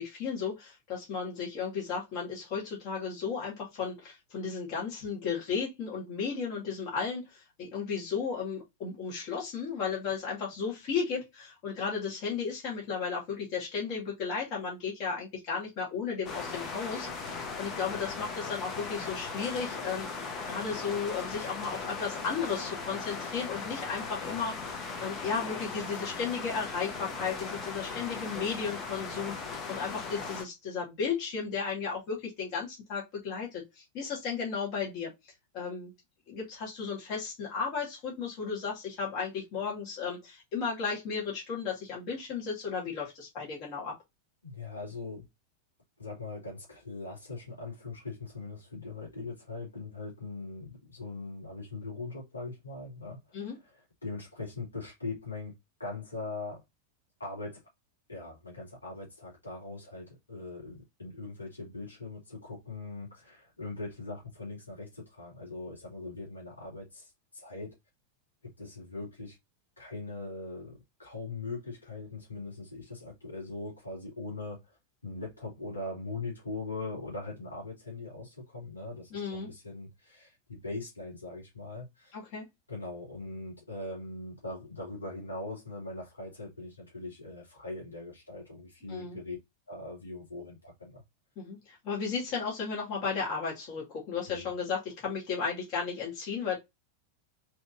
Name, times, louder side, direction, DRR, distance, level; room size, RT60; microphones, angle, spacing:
voice 1, 0.0-35.9 36.3-43.9 53.3-53.6 79.1-79.5 82.1-82.5 88.9-89.2 91.4-96.6, left 5 dB, 40° left, 2.2 m, -34 dB
sound 1, 16.3-30.4, left 4 dB, 25° left, 1.2 m, -38 dB
voice 2, 44.4-45.3 46.0-55.5 55.8-56.6 57.2-57.6 58.1-67.7 68.4-69.4 69.8-74.8 75.0-82.1 82.7-89.4 89.7-91.0 94.3-94.5, left 3 dB, 80° left, 2.9 m, -41 dB
4.6 x 4.1 x 2.7 m
figure-of-eight pair, 90°, 0 cm